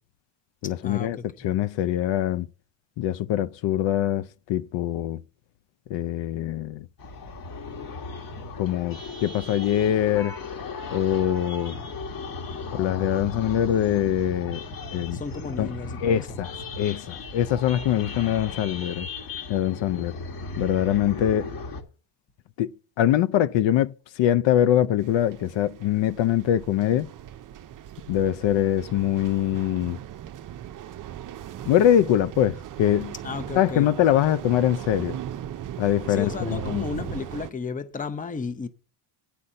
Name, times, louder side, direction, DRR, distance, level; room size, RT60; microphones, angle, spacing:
voice 1, 0.6-2.5 3.0-5.2 5.9-6.9 8.6-10.3 10.9-11.8 12.7-14.6 14.9-15.2 15.6-15.7 16.0-19.1 19.5-20.1 20.6-21.5 22.6-22.7 23.0-27.1 28.1-30.0 31.7-33.1 33.5-35.2 35.8-37.0, left 11 dB, 60° left, 0.6 m, -23 dB
sound 1, 7.0-21.8, left 3 dB, 45° left, 1.6 m, -36 dB
voice 2, 15.1-16.2 33.2-33.9 36.1-38.7, left 5 dB, 15° left, 0.7 m, -33 dB
sound 2, 25.0-37.5, right 11 dB, 40° right, 0.6 m, -38 dB
10.0 x 4.1 x 7.5 m
cardioid pair, 120°, 50 cm